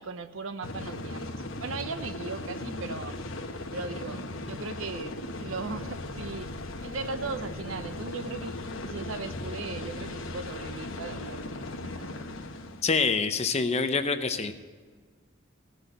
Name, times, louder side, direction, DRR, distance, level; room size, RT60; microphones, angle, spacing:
voice 1, 0.0-3.2 3.7-6.5 6.8-12.2, right 4 dB, 80° right, 10 dB, 0.8 m, -38 dB
sound 1, 0.6-12.8, left 2 dB, 75° left, 1.0 m, -37 dB
voice 2, 12.8-14.5, left 4 dB, 30° left, 9 dB, 0.7 m, -26 dB
16.5 x 6.2 x 7.8 m, 1.5 s
head